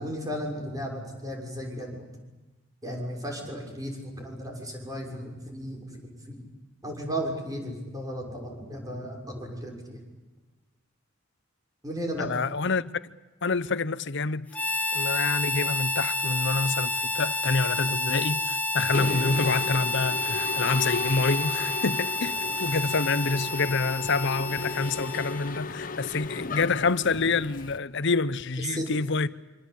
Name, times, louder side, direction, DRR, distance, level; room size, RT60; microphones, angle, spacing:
voice 1, 0.0-2.0 2.8-6.4 6.8-10.0 11.8-12.4 28.7-29.0, equal, 20° right, 6.5 m, -35 dB
voice 2, 12.2-12.8 13.4-14.5 14.9-29.3, left 4 dB, 60° left, 0.9 m, -27 dB
Harmonica, 14.5-25.6, left 2 dB, 5° left, 1.0 m, -30 dB
Mechanisms, 18.8-27.8, left 3 dB, 40° left, 1.2 m, -36 dB
26.5 x 26.0 x 8.4 m
head